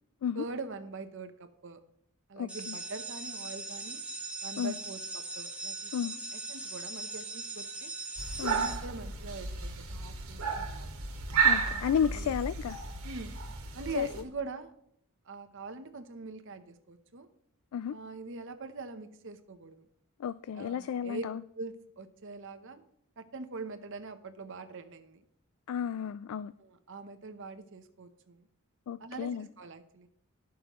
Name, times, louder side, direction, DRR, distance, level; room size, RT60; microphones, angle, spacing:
voice 1, 0.3-1.8 2.3-4.0 4.4-7.9 8.5-11.0 11.5-11.8 12.1-12.4 13.0-13.4 13.7-14.7 15.3-17.3 17.9-19.9 20.5-21.2 21.5-22.8 23.2-25.2 26.6-28.5 29.0-30.1, right 3 dB, 60° right, 10 dB, 0.9 m, -43 dB
voice 2, 2.4-2.7 4.6-4.7 5.9-6.1 8.4-8.7 11.4-12.8 14.0-14.1 17.7-18.0 20.2-21.4 25.7-26.5 28.9-29.5, left 8 dB, 85° left, 15 dB, 0.3 m, -32 dB
sound 1, 2.5-8.8, right 3 dB, 5° right, 1.1 m, -40 dB
sound 2, 8.2-14.2, right 5 dB, 85° right, 1.6 m, -32 dB
18.0 x 6.2 x 3.1 m, 0.72 s
head